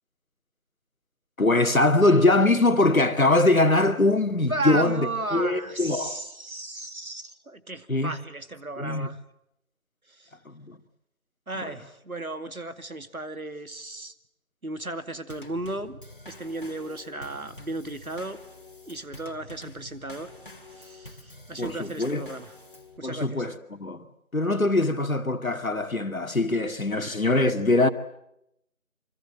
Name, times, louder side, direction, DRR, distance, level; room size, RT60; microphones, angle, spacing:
voice 1, 1.4-6.2 7.9-8.2 8.8-9.1 10.5-10.8 11.6-11.7 21.6-22.2 23.0-24.0 24.3-27.9, left 2 dB, 75° left, 2.4 m, -22 dB
voice 2, 4.5-9.2 10.2-10.3 11.5-14.1 14.6-16.0 16.3-18.4 18.9-20.3 20.7-22.5 23.0-23.5, right 2 dB, 80° right, 2.5 m, -35 dB
Drum kit / Snare drum / Bass drum, 15.3-23.0, left 2 dB, 40° left, 2.6 m, -47 dB
27.0 x 26.0 x 7.9 m
figure-of-eight pair, 170°, 42 cm